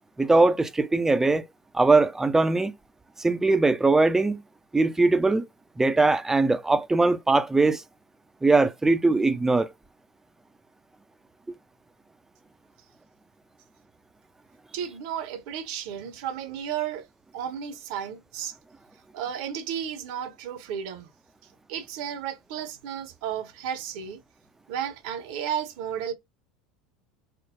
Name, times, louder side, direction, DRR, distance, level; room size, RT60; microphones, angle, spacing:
voice 1, 0.2-1.5 1.7-2.7 3.2-4.4 4.7-5.5 5.8-7.8 8.4-9.7, right 3 dB, 10° right, 0.5 m, -21 dB
voice 2, 14.7-17.1 17.3-18.5 19.1-21.1 21.7-24.2 24.7-26.1, right 9 dB, 60° right, 0.8 m, -33 dB
3.7 x 2.0 x 3.7 m
figure-of-eight pair, 75°, 4 cm